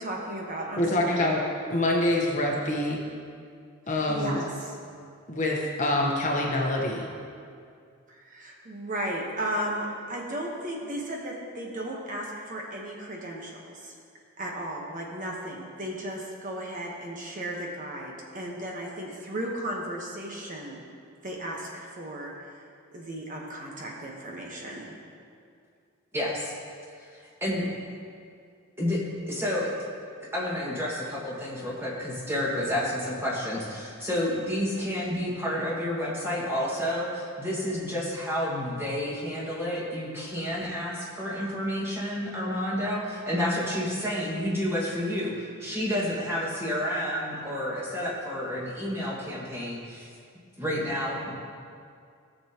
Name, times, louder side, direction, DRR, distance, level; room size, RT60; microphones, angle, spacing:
voice 1, 0.0-1.3 3.9-4.7 8.1-13.9 14.4-20.8 21.2-22.6 22.9-25.0, right 1 dB, 35° right, -2 dB, 1.2 m, -35 dB
voice 2, 0.8-1.4 1.7-3.0 3.9-4.4 5.3-7.1, left 1 dB, 35° left, -1 dB, 1.1 m, -25 dB
voice 3, 26.1-26.5 27.0-27.7 28.8-29.9 30.3-50.1 50.6-51.3, left 1 dB, 10° right, -5 dB, 1.8 m, -30 dB
17.5 x 6.9 x 3.0 m, 2.3 s
head